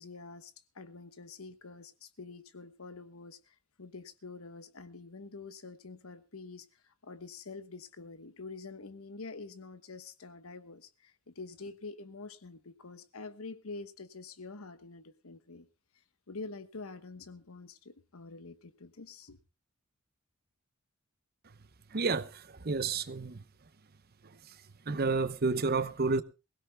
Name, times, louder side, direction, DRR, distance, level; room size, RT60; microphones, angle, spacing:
voice 1, 0.0-15.7 15.9-19.4, left 3 dB, 80° left, 1.2 m, -47 dB
voice 2, 21.9-23.4 24.2-26.2, right 4 dB, 45° right, 0.8 m, -31 dB
23.0 x 16.5 x 2.3 m
head